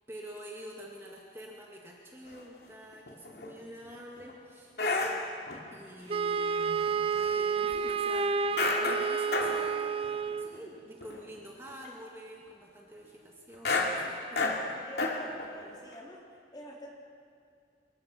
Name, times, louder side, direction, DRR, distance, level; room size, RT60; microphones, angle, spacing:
voice 1, 0.1-4.7 5.6-14.8, equal, 15° right, -2 dB, 2.0 m, -47 dB
sound 1, 2.3-2.4 2.9-3.5 3.8-4.3 4.8-5.6 6.6-7.4 7.7-7.8 8.6-9.7 10.0-10.1 10.5-10.7 11.0-11.4 11.7-11.9 13.5-15.5 15.9-16.0, left 3 dB, 65° left, 2.4 m, -31 dB
Wind instrument woodwind instrument, 6.1-10.5, right 5 dB, 30° right, 0.5 m, -30 dB
voice 2, 14.9-16.2 16.5-16.9, equal, 25° left, -2 dB, 3.4 m, -46 dB
24.5 x 22.0 x 5.9 m, 2.3 s
head